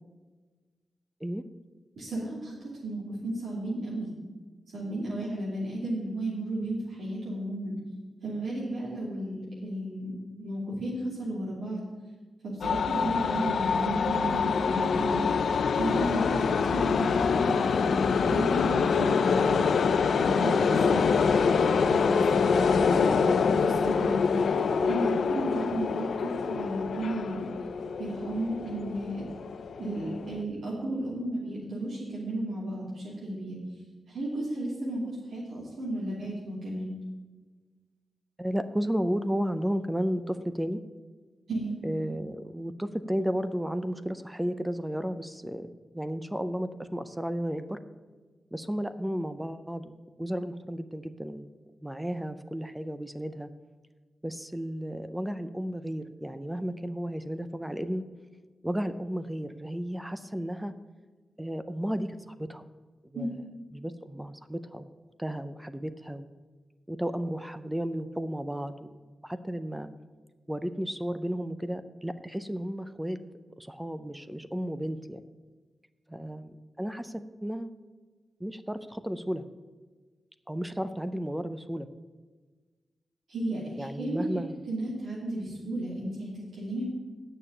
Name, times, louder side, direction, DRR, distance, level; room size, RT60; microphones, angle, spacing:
voice 1, 2.0-2.5 2.8-4.1 4.7-7.7 8.2-10.1 10.4-11.8 12.4-15.2 15.8-17.2 17.4-19.6 20.1-24.4 24.8-27.5 28.0-29.2 29.8-33.6 34.1-36.9 41.5-41.8 63.1-63.3 83.3-84.2 84.7-86.8, right 1 dB, 85° right, -8 dB, 2.9 m, -33 dB
sound 1, 12.6-30.3, left 5 dB, 70° left, 0.5 m, -25 dB
voice 2, 38.4-40.8 41.8-47.8 48.5-51.5 51.8-53.5 54.2-58.0 58.6-60.7 61.4-62.7 63.0-63.4 63.7-64.9 65.2-66.3 66.9-69.0 69.2-69.9 70.5-73.2 73.6-75.2 76.1-77.7 78.4-79.4 80.5-81.9 83.8-84.6, equal, 5° right, 11 dB, 0.5 m, -33 dB
9.1 x 6.6 x 8.6 m, 1.4 s
wide cardioid pair, 170°, 0 cm